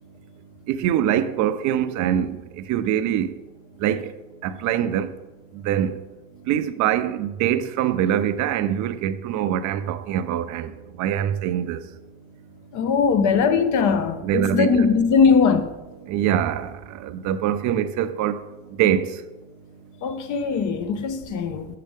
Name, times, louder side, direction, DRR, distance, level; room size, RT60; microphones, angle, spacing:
voice 1, 0.7-3.3 3.8-4.1 4.4-5.1 5.6-6.0 6.5-10.7 11.0-11.8 14.2-14.9 16.1-18.4 18.8-19.2, right 10 dB, 45° right, 0.5 m, -23 dB
voice 2, 12.7-15.7 20.0-21.7, left 5 dB, 45° left, 0.7 m, -20 dB
6.6 x 5.9 x 3.5 m
hypercardioid pair, 90°, 43 cm